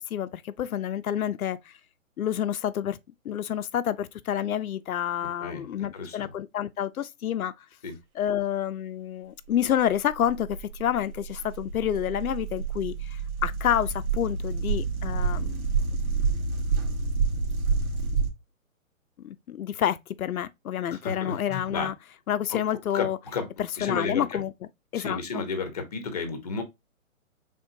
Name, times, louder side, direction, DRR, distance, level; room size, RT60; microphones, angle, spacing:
voice 1, 0.0-1.8 2.2-3.0 3.2-7.7 8.1-15.6 19.2-21.9 22.3-23.2 23.6-24.5 24.9-25.4, left 10 dB, 85° left, 0.6 m, -29 dB
voice 2, 5.9-6.3 7.8-8.0 20.9-21.9 22.5-22.6 22.9-23.5 23.8-24.4 24.9-26.6, left 4 dB, 30° left, 0.8 m, -32 dB
sound 1, 9.8-18.3, right 4 dB, 90° right, 1.3 m, -28 dB
5.2 x 3.6 x 2.6 m
hypercardioid pair, 170°, 42 cm